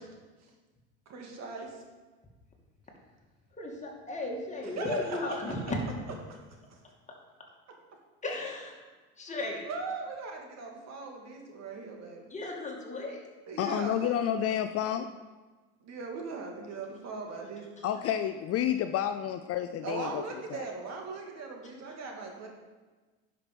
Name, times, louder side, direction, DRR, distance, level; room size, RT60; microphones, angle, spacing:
voice 1, 1.1-1.8 4.6-5.5 6.3-6.4 9.6-12.2 13.5-14.2 15.8-17.7 19.8-22.5, right 4 dB, 50° right, 1 dB, 2.2 m, -39 dB
voice 2, 3.6-5.8 8.2-8.9 9.2-9.7 12.3-13.3, left 2 dB, 20° left, -1 dB, 2.4 m, -35 dB
voice 3, 13.6-15.1 17.8-20.2 20.5-20.7, left 10 dB, 45° left, 9 dB, 0.5 m, -30 dB
10.5 x 6.0 x 5.2 m, 1.3 s
supercardioid pair, 90°, 33 cm